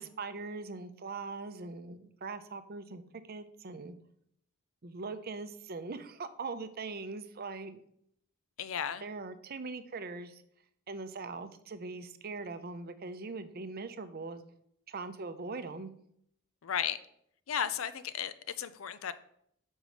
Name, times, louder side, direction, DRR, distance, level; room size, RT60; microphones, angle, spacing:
voice 1, 0.0-3.0 3.3-3.9 4.8-7.8 9.0-10.4 10.9-14.4 14.9-15.9, right 3 dB, 45° right, 10 dB, 0.6 m, -41 dB
voice 2, 8.6-9.1 16.6-17.0 17.5-19.1, left 8 dB, 70° left, 14 dB, 0.5 m, -34 dB
5.4 x 5.1 x 6.2 m, 0.71 s
head